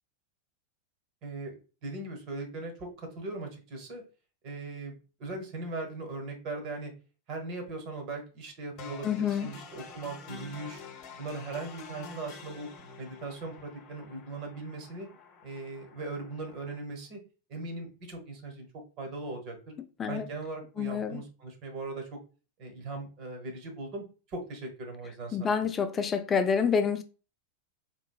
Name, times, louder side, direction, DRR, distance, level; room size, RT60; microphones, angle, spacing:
voice 1, 1.2-1.5 1.8-4.0 4.4-6.9 7.3-10.8 11.2-12.7 13.0-15.1 15.4-17.2 17.5-18.7 19.0-19.8 20.1-22.2 22.6-25.6, right 3 dB, 40° right, 1.1 m, -39 dB
sound 1, 8.8-16.8, left 5 dB, 40° left, 0.8 m, -48 dB
voice 2, 9.0-9.5 20.0-20.3 20.8-21.2 25.3-27.0, left 6 dB, 20° left, 0.4 m, -27 dB
4.4 x 2.9 x 2.3 m
figure-of-eight pair, 90°, 0 cm